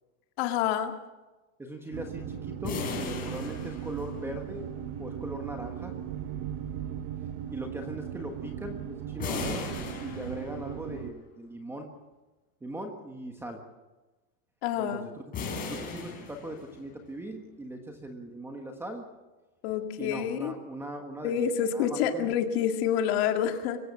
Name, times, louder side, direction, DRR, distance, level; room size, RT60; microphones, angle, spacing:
voice 1, 0.4-0.9 14.6-15.1 19.6-20.5 21.2-23.8, left 9 dB, 45° left, 5 dB, 2.3 m, -28 dB
voice 2, 1.6-4.7 5.0-5.9 7.5-9.7 10.0-11.9 12.6-13.6 14.8-15.2 15.7-19.0 20.0-22.3, right 1 dB, 5° right, 4 dB, 1.4 m, -40 dB
sound 1, 1.9-11.1, right 9 dB, 30° right, 1.1 m, -38 dB
sound 2, 2.6-4.5 9.2-10.8 15.3-17.0, left 5 dB, 20° left, 4.7 m, -37 dB
25.0 x 15.5 x 7.4 m, 1.1 s
supercardioid pair, 175°, 43 cm